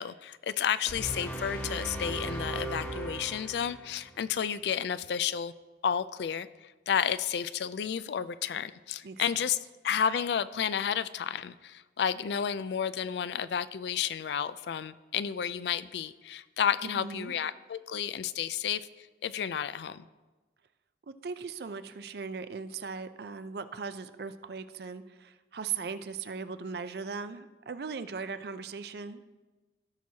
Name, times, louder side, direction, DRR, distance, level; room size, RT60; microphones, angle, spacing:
voice 1, 0.0-5.5 5.8-9.6 9.8-20.0, left 8 dB, 70° left, 15 dB, 0.3 m, -31 dB
sound 1, 0.9-4.1, right 1 dB, 10° left, 1.0 m, -37 dB
voice 2, 16.8-17.3 21.0-29.2, right 5 dB, 60° right, 12 dB, 0.5 m, -38 dB
16.5 x 6.2 x 2.8 m, 1.2 s
head